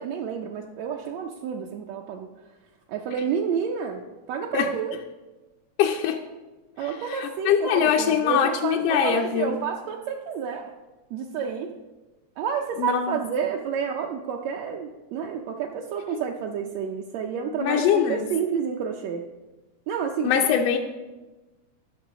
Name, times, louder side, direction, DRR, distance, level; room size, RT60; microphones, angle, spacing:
voice 1, 0.0-2.3 2.9-4.9 6.8-10.7 11.1-11.7 12.4-19.2 19.9-20.6, right 7 dB, 75° right, 1 dB, 1.7 m, -30 dB
voice 2, 5.8-6.2 6.8-9.6 12.8-13.2 17.6-18.3 20.2-20.8, left 8 dB, 75° left, 2 dB, 1.5 m, -23 dB
12.0 x 6.1 x 4.9 m, 1.2 s
omnidirectional pair, 3.3 m